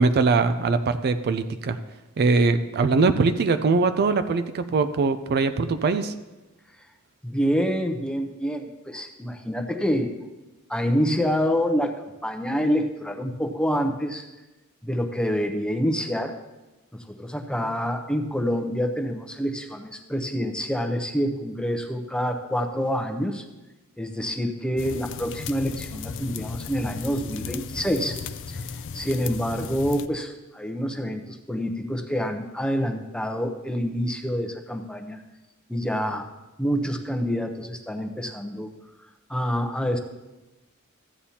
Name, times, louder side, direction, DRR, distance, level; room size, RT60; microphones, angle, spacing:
voice 1, 0.0-1.8 2.2-6.1, right 4 dB, 45° right, 10 dB, 0.4 m, -22 dB
voice 2, 7.2-10.1 10.7-14.3 14.8-16.3 16.9-23.4 24.0-28.2 28.5-28.6 28.9-35.2 35.7-36.3 36.6-38.7 39.3-40.0, equal, 5° left, 5 dB, 0.7 m, -27 dB
sound 1, 24.8-30.1, left 5 dB, 55° left, 0.4 m, -36 dB
14.0 x 8.6 x 2.8 m, 1.1 s
head